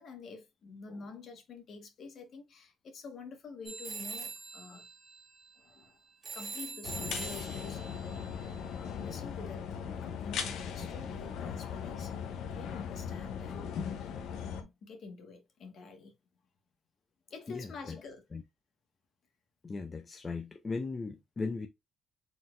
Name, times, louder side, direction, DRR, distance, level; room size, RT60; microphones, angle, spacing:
voice 1, 0.0-4.8 5.6-6.0 6.3-12.1 12.5-13.8 14.4-16.1 17.3-18.2, left 4 dB, 60° left, 1.5 m, -48 dB
sound 1, 3.7-9.1, right 4 dB, 50° right, 1.6 m, -44 dB
sound 2, 6.8-14.6, left 7 dB, 85° left, 0.8 m, -38 dB
voice 2, 17.5-18.0 18.3-18.4 19.6-21.7, left 4 dB, 30° left, 0.5 m, -38 dB
4.1 x 3.9 x 2.5 m
cardioid pair, 90°, 0 cm